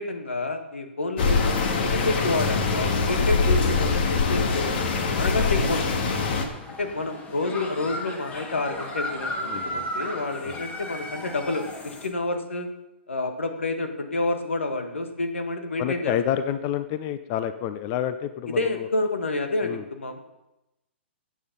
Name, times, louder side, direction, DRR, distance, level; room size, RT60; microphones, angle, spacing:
voice 1, 0.0-4.8 5.2-6.1 6.7-12.7 13.1-16.2 18.6-20.2, left 2 dB, 90° left, 6 dB, 1.8 m, -29 dB
sound 1, 1.2-6.4, left 4 dB, 55° left, 2.0 m, -23 dB
sound 2, 5.6-12.1, left 1 dB, 20° left, 2.0 m, -35 dB
voice 2, 9.5-9.9 10.4-10.6 15.8-18.9 19.6-19.8, left 10 dB, 35° left, 11 dB, 0.7 m, -29 dB
14.0 x 8.6 x 5.4 m, 0.93 s
hypercardioid pair, 130°, 6 cm